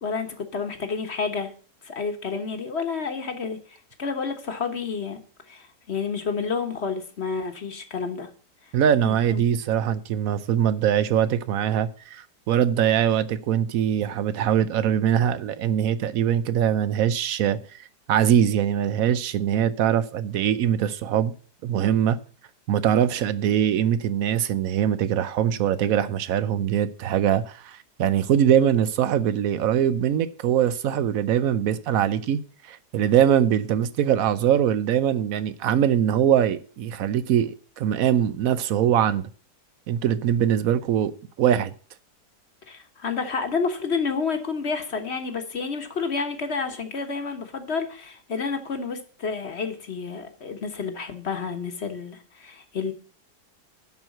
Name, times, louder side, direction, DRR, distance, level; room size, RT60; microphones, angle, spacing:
voice 1, 0.0-1.5 1.8-3.6 4.0-5.2 5.5-8.3 9.0-9.4 42.7-52.9, left 5 dB, 40° left, 1.4 m, -30 dB
voice 2, 8.7-17.6 18.1-21.3 21.6-22.2 22.7-32.4 32.7-39.2 39.9-41.1 41.4-41.7, right 9 dB, 65° right, 1.0 m, -22 dB
11.0 x 4.5 x 7.7 m
omnidirectional pair, 1.8 m